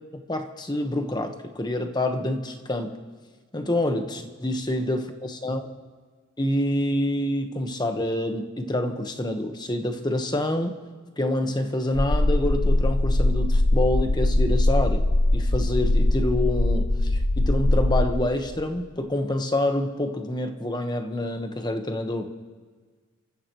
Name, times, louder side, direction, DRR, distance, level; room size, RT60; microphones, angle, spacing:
voice 1, 0.1-3.0 3.5-5.7 6.4-10.7 11.2-15.1 15.3-22.3, left 1 dB, 20° left, 6 dB, 1.2 m, -27 dB
sound 1, 11.9-18.5, left 1 dB, 85° left, 1.0 m, -21 dB
29.5 x 14.5 x 3.1 m, 1.5 s
head